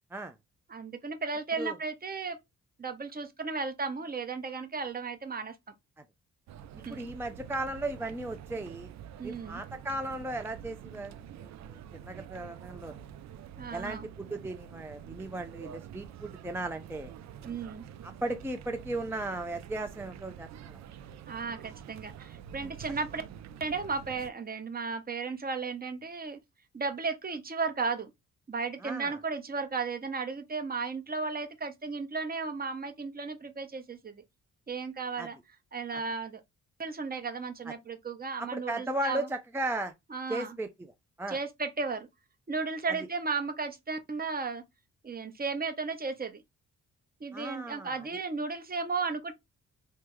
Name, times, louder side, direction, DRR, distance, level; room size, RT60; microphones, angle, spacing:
voice 1, 0.7-2.4 2.8-5.5 6.8-7.1 9.2-9.6 13.6-14.1 17.4-17.8 21.3-23.2 23.6-26.4 26.7-28.1 28.5-34.2 34.7-35.4 35.7-36.4 36.8-39.3 40.1-40.6 41.3-42.1 42.5-44.6 45.0-46.4 47.2-49.3, right 4 dB, 30° right, 0.8 m, -34 dB
sound 1, 6.5-24.3, right 9 dB, 65° right, 0.4 m, -47 dB
voice 2, 6.9-8.9 9.2-13.1 13.7-17.1 18.0-20.8 28.8-29.2 35.2-35.3 35.9-36.0 37.7-37.8 38.4-39.9 40.3-40.9 41.2-41.4 47.3-48.1, right 1 dB, 10° right, 0.5 m, -36 dB
3.4 x 2.1 x 3.0 m
cardioid pair, 70°, 30 cm